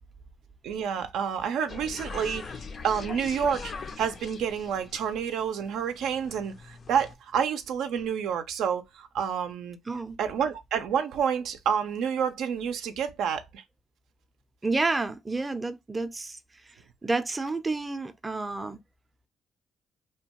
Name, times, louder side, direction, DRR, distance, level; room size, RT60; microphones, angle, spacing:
voice 1, 0.6-2.5 2.8-3.7 4.0-9.8 10.2-13.6, right 7 dB, 85° right, 0.4 m, -29 dB
sound 1, 1.7-7.2, left 5 dB, 50° left, 0.4 m, -41 dB
voice 2, 14.6-16.4 17.0-18.8, right 3 dB, 20° right, 0.4 m, -29 dB
2.8 x 2.2 x 2.8 m
cardioid pair, 90°, 0 cm